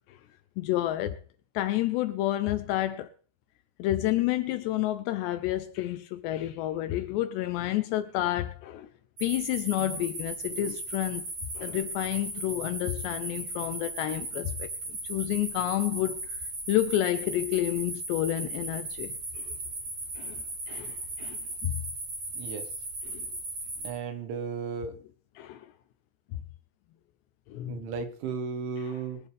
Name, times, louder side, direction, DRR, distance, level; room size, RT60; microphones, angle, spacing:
voice 1, 0.6-1.2 1.5-3.1 3.8-8.9 9.2-11.2 11.6-16.4 16.7-19.5 20.2-21.8 23.1-23.3 25.4-25.7 27.5-27.8 28.9-29.0, left 14 dB, 80° left, 2.7 m, -30 dB
sound 1, 9.2-23.9, right 2 dB, 35° right, 5.4 m, -37 dB
voice 2, 22.3-22.7 23.8-24.9 27.7-29.2, right 5 dB, 85° right, 4.0 m, -35 dB
22.5 x 10.5 x 3.4 m
omnidirectional pair, 5.2 m